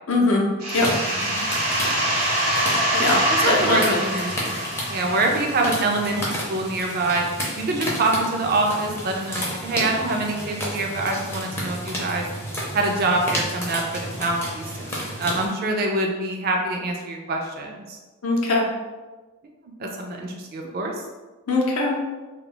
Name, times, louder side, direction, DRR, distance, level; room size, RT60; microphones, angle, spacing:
voice 1, 0.1-0.4 0.7-0.9 2.9-3.2 3.4-4.0 18.2-18.6 21.5-22.0, left 2 dB, 65° left, -1 dB, 0.6 m, -21 dB
sound 1, 0.6-6.1, right 1 dB, 90° right, 0.8 m, -24 dB
sound 2, 0.7-15.5, equal, 10° left, 0.5 m, -32 dB
voice 2, 3.3-4.6 4.9-7.3 7.6-12.2 12.7-18.0 19.8-20.9, right 2 dB, 45° right, 1 dB, 0.4 m, -25 dB
2.3 x 2.0 x 3.6 m, 1.2 s
head